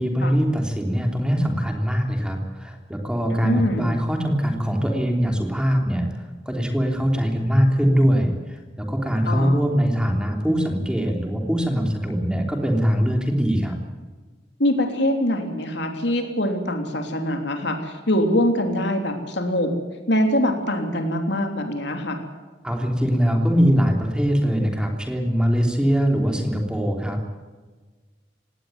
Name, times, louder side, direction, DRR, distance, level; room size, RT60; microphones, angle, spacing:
voice 1, 0.0-13.8 22.6-27.3, equal, 5° right, 2 dB, 3.2 m, -22 dB
voice 2, 3.4-3.9 9.2-9.6 14.6-19.7 20.1-22.2, left 1 dB, 60° left, 4 dB, 3.3 m, -23 dB
18.5 x 18.0 x 9.4 m, 1.3 s
head